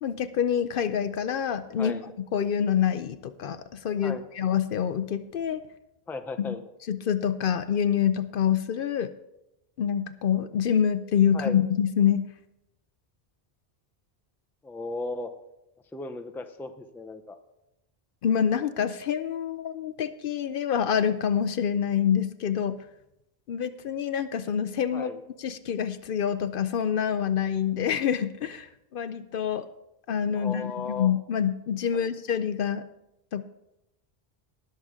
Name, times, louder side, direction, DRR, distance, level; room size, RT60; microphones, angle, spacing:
voice 1, 0.0-2.0 2.3-5.6 6.4-6.5 6.9-9.1 9.8-12.3 18.2-22.8 23.5-25.1 25.4-29.7 30.1-32.8 33.3-33.4, left 8 dB, 65° left, 12 dB, 0.7 m, -26 dB
voice 2, 6.1-6.6 11.3-11.6 14.6-15.3 15.9-17.4 24.9-25.2 30.3-31.2 31.9-32.1, left 3 dB, 5° left, 8 dB, 0.5 m, -36 dB
19.5 x 6.7 x 3.6 m, 0.88 s
omnidirectional pair, 1.0 m